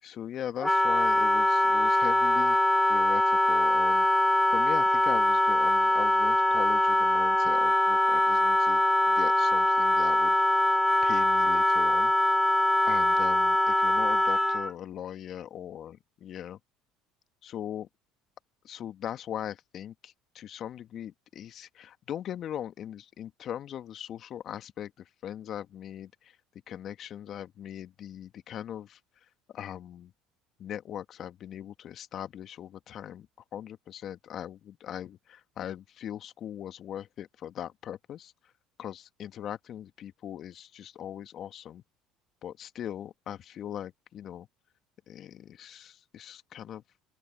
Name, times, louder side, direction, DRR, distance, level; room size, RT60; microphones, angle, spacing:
voice 1, 0.0-2.6 2.9-4.1 4.5-10.4 11.0-12.1 12.8-16.0 16.2-16.6 17.4-17.9 18.6-26.4 26.7-30.1 30.6-33.3 33.5-38.5 38.8-41.8 42.4-44.5 45.1-46.8, left 10 dB, 50° left, 1.7 m, -40 dB
Wind instrument woodwind instrument, 0.6-14.7, left 1 dB, 5° left, 0.3 m, -23 dB
open air
hypercardioid pair, 70°, 0 cm